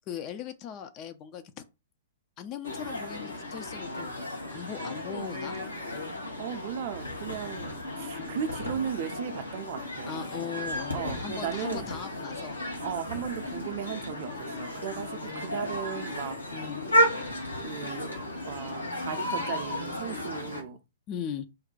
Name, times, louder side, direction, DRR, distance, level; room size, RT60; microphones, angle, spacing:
voice 1, 0.1-1.6 2.4-4.1 4.5-5.6 8.2-8.4 10.1-12.6 14.9-15.5 16.5-16.8 21.1-21.5, left 8 dB, 30° left, 0.4 m, -39 dB
sound 1, 2.6-20.6, equal, 80° left, 0.9 m, -33 dB
voice 2, 6.4-10.3 10.9-11.9 12.8-16.4 17.6-18.2 18.5-20.8, right 8 dB, 45° right, 0.5 m, -36 dB
2.6 x 2.1 x 4.0 m
figure-of-eight pair, 110°, 0 cm